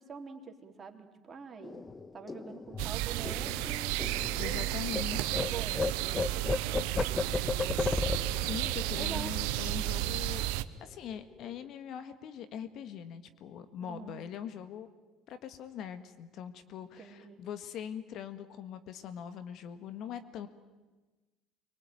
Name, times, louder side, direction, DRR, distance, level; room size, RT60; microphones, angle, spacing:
voice 1, 0.0-1.8 2.1-4.0 4.3-8.0 8.9-9.4 13.8-14.2 17.0-17.4, right 5 dB, 30° right, 3 dB, 3.4 m, -46 dB
sound 1, 1.6-5.0 5.3-10.3 10.6-10.8 11.1-11.7, left 4 dB, 25° left, 1.2 m, -35 dB
sound 2, 2.8-10.6, right 16 dB, 75° right, 0.8 m, -33 dB
voice 2, 4.4-5.5 8.3-10.5 10.8-14.9 15.3-20.5, left 9 dB, 60° left, 10 dB, 1.7 m, -42 dB
25.5 x 23.0 x 9.2 m, 1.2 s
hypercardioid pair, 75°, 0 cm